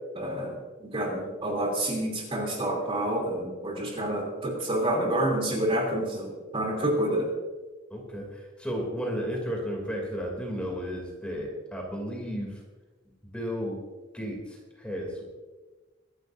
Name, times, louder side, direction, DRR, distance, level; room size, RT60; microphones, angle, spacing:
voice 1, 0.1-7.3, right 1 dB, 30° right, 0 dB, 3.2 m, -28 dB
voice 2, 7.9-12.6 13.3-13.8 14.1-15.2, equal, 5° left, -1 dB, 2.9 m, -33 dB
24.0 x 12.0 x 2.7 m, 1.3 s
head